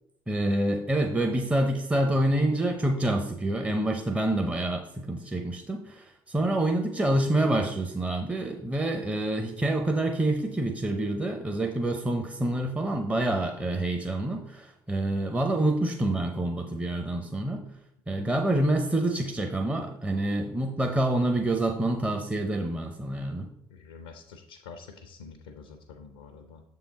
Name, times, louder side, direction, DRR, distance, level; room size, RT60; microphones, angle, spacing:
voice 1, 0.3-17.7 18.1-23.5, right 1 dB, 10° right, 4 dB, 0.7 m, -27 dB
voice 2, 23.7-26.6, left 5 dB, 75° left, 6 dB, 0.6 m, -47 dB
7.0 x 3.8 x 4.1 m, 0.79 s
figure-of-eight pair, 50°, 11 cm